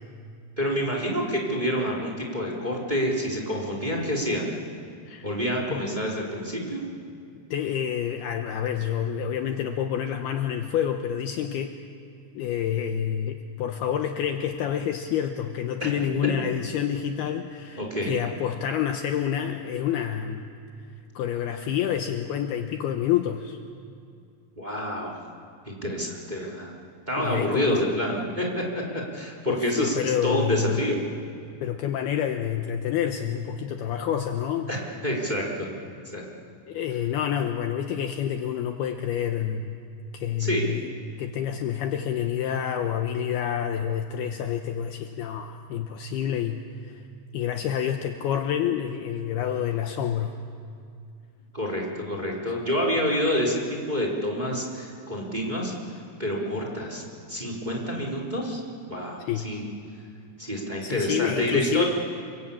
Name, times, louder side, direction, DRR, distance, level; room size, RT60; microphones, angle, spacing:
voice 1, 0.6-4.5 5.2-6.8 17.8-18.1 24.6-25.2 25.6-26.7 27.1-31.0 34.7-34.8 35.0-35.7 36.1-36.2 40.4-40.6 51.5-55.7 56.2-57.0 57.3-58.6 58.9-59.6 60.4-61.8, equal, 10° right, -1 dB, 3.3 m, -28 dB
voice 2, 7.5-11.8 12.3-20.5 21.2-23.6 27.2-28.0 29.5-30.8 31.6-34.7 36.7-39.8 40.1-40.9 41.2-47.0 47.3-50.4 59.2-59.5 60.8-61.8, left 9 dB, 75° left, 6 dB, 2.6 m, -28 dB
29.0 x 23.0 x 8.6 m, 2.3 s
omnidirectional pair, 5.2 m